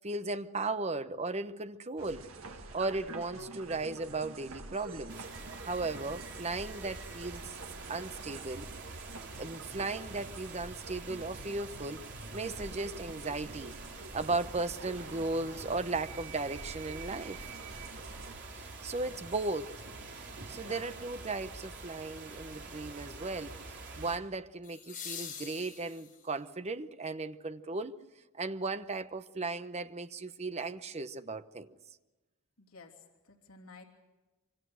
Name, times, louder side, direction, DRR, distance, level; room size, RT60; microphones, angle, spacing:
voice 1, 0.0-2.3 2.7-5.3 5.6-7.5 7.9-8.7 9.4-17.5 18.5-19.7 20.5-28.0 28.4-31.8, right 3 dB, 30° right, 0.8 m, -36 dB
sound 1, 2.0-18.4, right 3 dB, 75° right, 1.8 m, -47 dB
sound 2, 5.1-24.2, right 3 dB, 55° right, 3.9 m, -46 dB
voice 2, 18.8-19.2 20.5-21.0 32.6-32.9 33.2-33.8, left 3 dB, 85° left, 3.1 m, -53 dB
sound 3, 19.0-19.1 24.6-26.4 28.6-28.7, left 8 dB, 40° left, 5.9 m, -44 dB
26.5 x 25.0 x 6.4 m
head